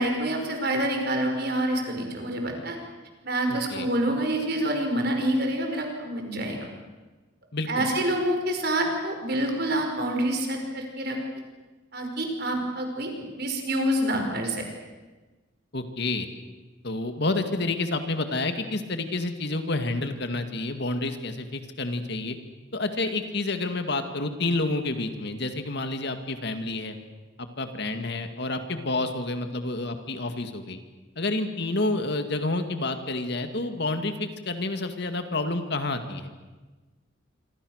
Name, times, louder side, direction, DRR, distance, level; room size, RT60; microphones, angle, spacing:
voice 1, 0.0-2.8 3.2-6.7 7.7-11.2 11.9-13.1 13.4-14.6, right 1 dB, 50° right, 3 dB, 5.4 m, -27 dB
voice 2, 3.5-3.9 7.5-7.9 15.7-16.3 16.8-22.4 22.7-27.0 27.4-30.8 31.2-36.3, left 2 dB, 55° left, 7 dB, 2.2 m, -29 dB
26.5 x 26.0 x 6.6 m, 1.2 s
head